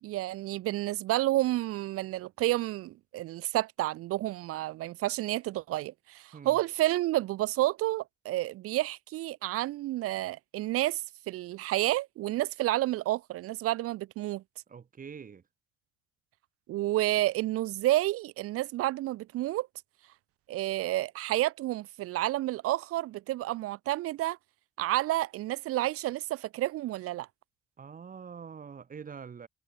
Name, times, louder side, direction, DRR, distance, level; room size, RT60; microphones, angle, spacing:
voice 1, 0.0-14.4 16.7-19.7 20.5-24.4 24.8-27.3, right 16 dB, 55° right, 0.4 m, -30 dB
voice 2, 14.7-15.4 27.8-29.5, right 6 dB, 30° right, 1.4 m, -45 dB
cardioid pair, 125°, 29 cm